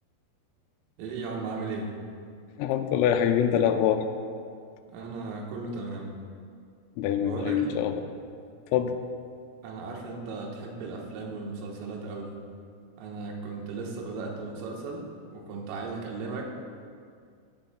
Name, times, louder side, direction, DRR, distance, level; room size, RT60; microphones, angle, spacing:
voice 1, 1.0-1.9 4.9-6.1 7.2-7.8 9.6-12.3 13.0-16.4, right 3 dB, 85° right, -1 dB, 3.9 m, -36 dB
voice 2, 2.6-4.1 7.0-8.1 8.7-9.0, left 9 dB, 85° left, 7 dB, 3.1 m, -25 dB
18.0 x 10.0 x 2.2 m, 2.2 s
omnidirectional pair, 5.9 m